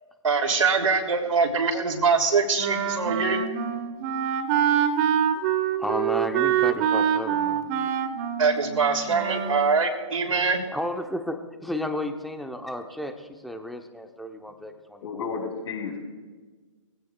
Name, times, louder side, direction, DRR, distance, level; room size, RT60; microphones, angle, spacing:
voice 1, 0.2-3.4 8.4-10.6, right 4 dB, 70° right, 3 dB, 3.2 m, -23 dB
Wind instrument woodwind instrument, 2.6-9.7, right 9 dB, 30° right, 1.3 m, -25 dB
voice 2, 5.8-7.9 10.3-15.2 15.5-15.6, left 1 dB, ahead, 5 dB, 1.0 m, -33 dB
voice 3, 15.0-16.0, left 5 dB, 60° left, 0 dB, 5.8 m, -32 dB
22.0 x 16.5 x 2.5 m, 1.3 s
hypercardioid pair, 140°, 17 cm